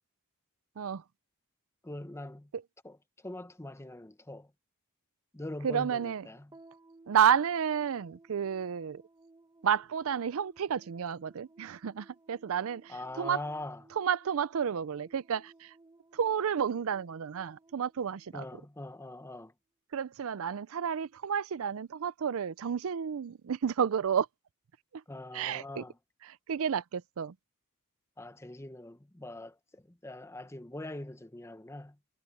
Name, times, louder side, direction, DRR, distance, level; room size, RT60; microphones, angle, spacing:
voice 1, 1.8-2.5 2.8-4.5 5.3-6.5 12.9-13.8 18.3-19.5 25.1-26.0 28.2-32.0, left 1 dB, 10° left, 0.9 m, -43 dB
voice 2, 5.6-6.2 7.1-9.0 9.6-13.4 14.0-15.7 16.1-18.4 19.9-24.3 24.9-25.0 25.3-25.8 26.3-27.3, right 8 dB, 65° right, 0.4 m, -31 dB
sound 1, 6.5-19.0, right 2 dB, 20° right, 1.3 m, -60 dB
head